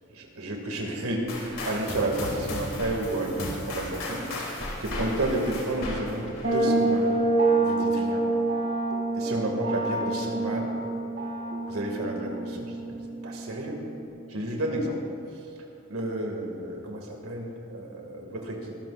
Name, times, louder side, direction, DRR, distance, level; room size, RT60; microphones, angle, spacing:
voice 1, 0.1-7.1 7.6-8.3 9.1-10.7 11.7-13.0 13.2-13.8 14.3-15.0 15.9-18.7, right 1 dB, 90° right, 0 dB, 2.4 m, -31 dB
sound 1, 1.3-7.1, left 1 dB, 70° left, 3.4 m, -36 dB
sound 2, 6.4-14.1, right 2 dB, 55° right, 3.2 m, -27 dB
23.5 x 14.5 x 2.6 m, 2.8 s
head